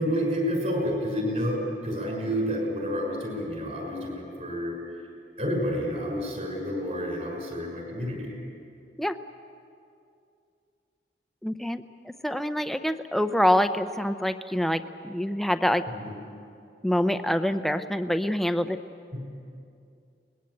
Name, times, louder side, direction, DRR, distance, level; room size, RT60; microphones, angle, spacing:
voice 1, 0.0-4.8 5.4-8.4 15.9-16.1 19.1-19.2, equal, 40° right, 0 dB, 6.2 m, -29 dB
voice 2, 11.4-15.9 16.8-18.8, equal, ahead, 9 dB, 0.6 m, -26 dB
22.5 x 20.0 x 8.5 m, 2.5 s
head